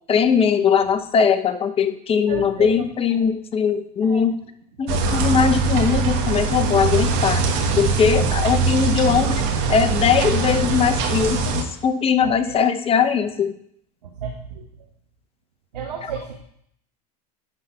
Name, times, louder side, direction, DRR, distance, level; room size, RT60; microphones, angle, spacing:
voice 1, 0.1-4.3 4.8-7.4 7.8-9.4 9.7-13.5, left 7 dB, 30° left, 8 dB, 0.8 m, -20 dB
voice 2, 2.3-2.9 3.1-3.3 4.0-4.2 12.2-12.6 14.0-14.6 15.7-16.4, right 6 dB, 90° right, 1 dB, 1.2 m, -33 dB
sound 1, 4.9-11.6, right 4 dB, 60° right, 1.5 m, -22 dB
10.5 x 4.1 x 5.7 m, 0.70 s
hypercardioid pair, 95°, 20 cm